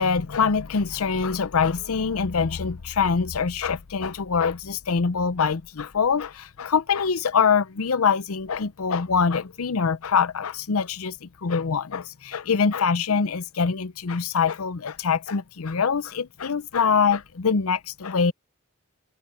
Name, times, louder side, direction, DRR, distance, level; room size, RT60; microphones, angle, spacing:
voice 1, 0.0-18.3, left 5 dB, 90° left, 0.7 m, -24 dB
head